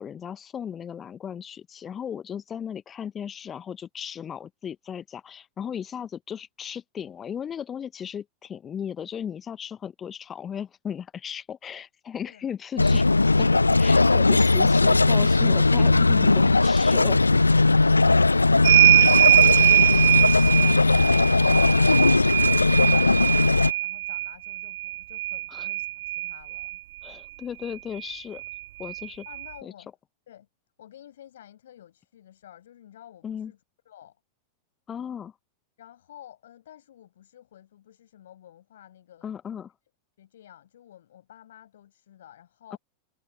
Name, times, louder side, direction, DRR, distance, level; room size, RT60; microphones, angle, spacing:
voice 1, 0.0-13.5 13.8-17.2 25.5-25.7 27.0-28.4 28.8-29.2 29.6-29.7 33.2-33.5 34.9-35.3 39.2-39.7 42.7-42.8, left 8 dB, 25° left, 0.9 m, -36 dB
sound 1, 12.8-23.7, left 3 dB, 80° left, 0.4 m, -19 dB
voice 2, 17.7-26.8 29.0-29.9 30.3-30.5 30.8-33.6 33.9-34.2 35.8-39.6 40.2-42.8, left 11 dB, 60° left, 5.8 m, -51 dB
sound 2, 18.6-26.8 28.0-28.1 28.4-29.5, right 16 dB, 55° right, 0.5 m, -22 dB
figure-of-eight pair, 90°, 0 cm